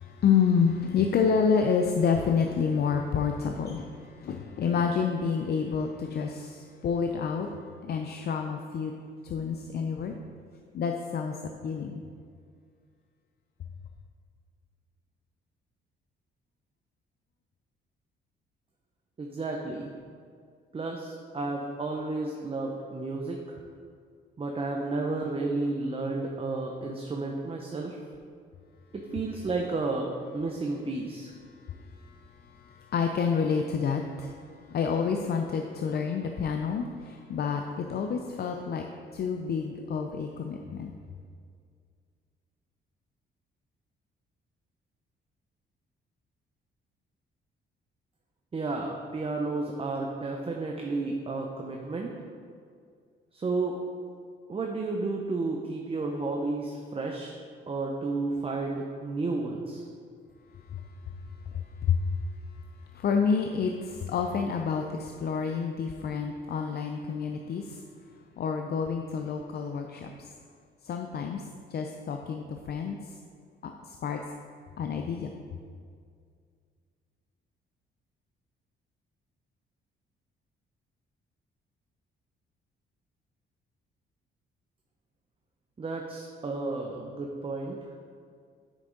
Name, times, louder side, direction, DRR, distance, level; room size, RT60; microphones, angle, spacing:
voice 1, 0.0-7.5 7.8-8.9 9.2-10.2 10.7-11.4 11.6-12.0 31.5-38.9 39.1-40.9 60.5-67.8 68.4-70.3 70.8-71.4 71.7-73.2 73.6-74.2 74.8-75.3, left 6 dB, 55° left, 4 dB, 0.5 m, -29 dB
voice 2, 19.2-19.9 20.7-23.6 24.4-28.0 28.9-30.1 30.3-31.3 48.5-52.1 53.3-53.8 54.5-57.3 57.7-59.8 85.8-87.8, right 3 dB, 30° right, 1 dB, 0.8 m, -32 dB
7.8 x 6.1 x 3.9 m, 2.2 s
cardioid pair, 90°, 20 cm